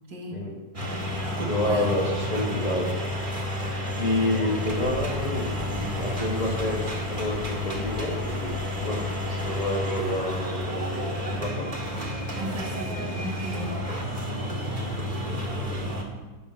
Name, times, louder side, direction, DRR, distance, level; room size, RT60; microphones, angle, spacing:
sound 1, 0.7-16.0, left 1 dB, 30° right, 2.0 m, -31 dB
voice 1, 0.8-1.9 12.4-13.7, right 1 dB, 90° right, 0 dB, 2.7 m, -36 dB
voice 2, 1.4-2.9 4.0-11.7 15.7-16.0, left 1 dB, 25° left, -4 dB, 1.8 m, -29 dB
sound 2, 4.6-9.7, left 4 dB, 80° left, 1.8 m, -39 dB
14.5 x 7.6 x 6.4 m, 1.2 s
omnidirectional pair, 1.9 m